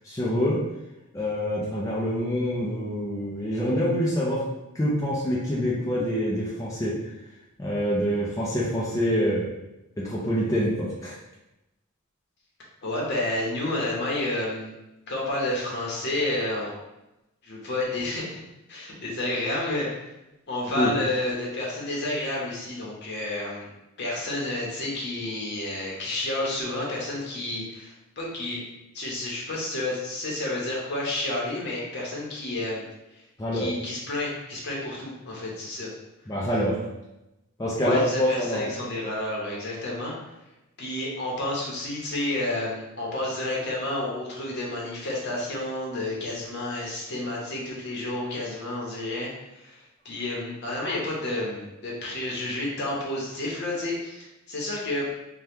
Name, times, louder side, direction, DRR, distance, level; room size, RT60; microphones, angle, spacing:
voice 1, 0.0-0.6 1.1-4.4 4.7-7.1 7.6-9.5 10.0-11.2 20.7-20.9 33.4-33.7 36.3-36.8 37.6-38.7, equal, 15° left, -7 dB, 0.4 m, -26 dB
voice 2, 12.8-14.7 15.1-16.7 17.4-18.4 18.7-19.9 20.5-23.7 24.0-28.6 28.9-32.8 33.1-33.2 33.5-35.9 37.8-40.1 40.8-55.1, left 1 dB, 50° left, -3 dB, 0.8 m, -30 dB
2.8 x 2.2 x 3.4 m, 0.95 s
head